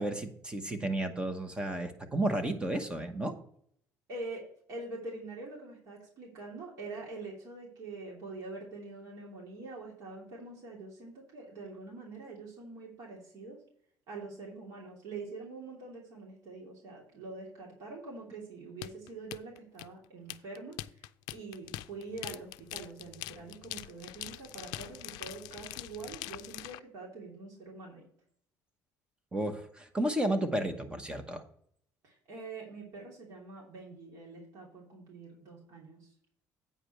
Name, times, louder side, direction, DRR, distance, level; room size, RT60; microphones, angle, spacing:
voice 1, 0.0-3.3 29.3-31.4, right 1 dB, 15° right, 7 dB, 1.0 m, -32 dB
voice 2, 4.1-13.6 14.1-28.0 32.0-36.1, right 3 dB, 55° right, -3 dB, 3.0 m, -45 dB
sound 1, 18.8-26.8, left 16 dB, 85° left, 0.4 m, -43 dB
8.8 x 5.0 x 5.9 m, 0.63 s
cardioid pair, 140°, 7 cm